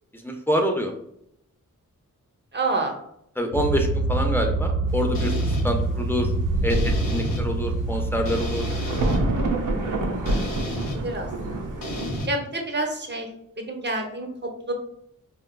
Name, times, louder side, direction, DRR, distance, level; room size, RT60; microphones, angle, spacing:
voice 1, 0.2-0.9 3.4-6.3 6.6-8.6, equal, 5° left, 3 dB, 0.5 m, -26 dB
voice 2, 2.5-3.0 10.7-11.3 12.3-13.3 13.6-14.7, right 2 dB, 30° right, 2 dB, 0.7 m, -28 dB
sound 1, 3.5-9.4, right 2 dB, 85° right, 1.0 m, -26 dB
sound 2, 5.1-5.6 6.7-7.4 8.3-9.2 10.3-11.0 11.8-12.3, left 1 dB, 90° left, 0.7 m, -32 dB
Thunder, 6.1-6.2 6.4-12.2, right 2 dB, 65° right, 0.6 m, -28 dB
4.3 x 2.3 x 2.2 m, 0.73 s
wide cardioid pair, 75°, 33 cm